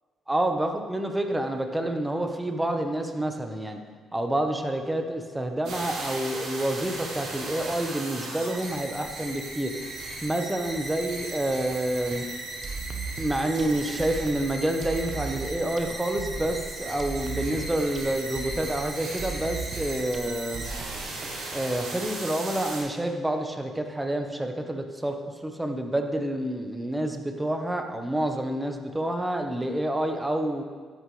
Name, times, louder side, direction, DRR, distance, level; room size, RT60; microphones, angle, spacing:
voice 1, 0.3-3.8 4.1-9.7 10.2-12.2 13.2-20.6 21.5-30.6, right 1 dB, 10° right, 4 dB, 1.2 m, -28 dB
sound 1, 5.6-22.8, right 2 dB, 80° right, 3.7 m, -37 dB
sound 2, 12.6-21.3, right 4 dB, 45° right, 1.0 m, -37 dB
12.5 x 10.5 x 3.4 m, 1.5 s
cardioid pair, 90°, 0 cm